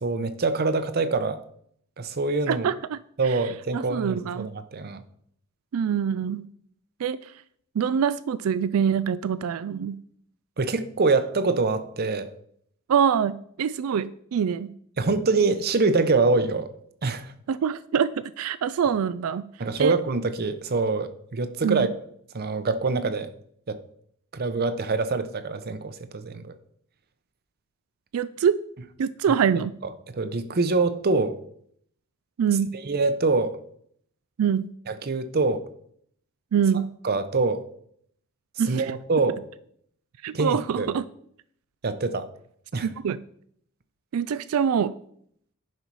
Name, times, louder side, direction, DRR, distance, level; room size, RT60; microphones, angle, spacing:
voice 1, 0.0-1.4 2.0-2.7 3.2-5.0 10.6-12.3 15.0-16.7 17.0-17.3 19.6-21.9 22.3-23.3 23.7-23.8 24.3-26.5 30.1-31.4 32.8-33.6 34.9-35.7 37.0-37.6 38.7-39.4 40.3-40.9 41.8-42.3 42.7-42.9, right 3 dB, 50° right, 0.7 m, -25 dB
voice 2, 2.5-3.4 3.7-4.5 5.7-6.5 7.0-7.3 7.8-10.0 12.9-13.3 13.6-14.7 17.5-19.4 19.8-20.0 21.6-21.9 28.1-28.6 29.0-29.7 32.4-32.7 34.4-34.7 36.5-36.9 38.6-38.9 40.2-41.0 42.8-43.2 44.1-44.9, right 7 dB, 85° right, 0.4 m, -25 dB
10.5 x 5.5 x 4.7 m
head